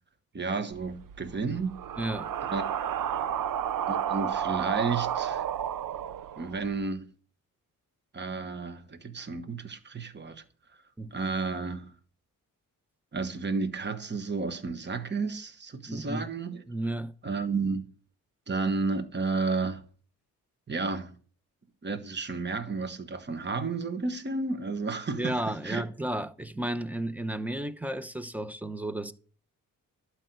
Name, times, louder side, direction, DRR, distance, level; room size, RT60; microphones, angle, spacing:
voice 1, 0.3-1.7 2.5-2.7 3.9-5.5 6.4-7.1 8.1-10.4 11.1-11.9 13.1-16.6 17.2-17.9 18.5-19.8 20.7-21.1 21.8-25.8, right 4 dB, 30° right, 1.3 m, -32 dB
sound 1, 0.7-6.8, right 9 dB, 70° right, 0.7 m, -32 dB
voice 2, 2.0-2.3 11.0-11.1 15.9-16.3 16.7-17.1 25.1-29.1, right 1 dB, 5° right, 0.8 m, -33 dB
12.0 x 4.8 x 8.1 m
cardioid pair, 105°, 34 cm